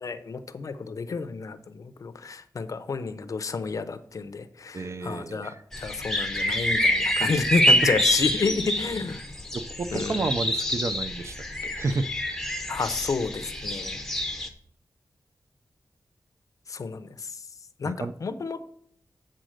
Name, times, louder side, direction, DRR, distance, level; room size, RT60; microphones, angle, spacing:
voice 1, 0.0-9.2 9.9-10.3 12.7-14.0 16.7-17.4 17.8-18.6, left 4 dB, 55° left, 11 dB, 0.6 m, -30 dB
voice 2, 4.7-5.6 9.5-11.4 11.6-12.1 17.8-18.1, right 3 dB, 45° right, 12 dB, 0.4 m, -31 dB
sound 1, 5.7-14.5, equal, 5° left, 0.7 m, -27 dB
7.7 x 3.9 x 6.4 m, 0.63 s
wide cardioid pair, 150°, 7 cm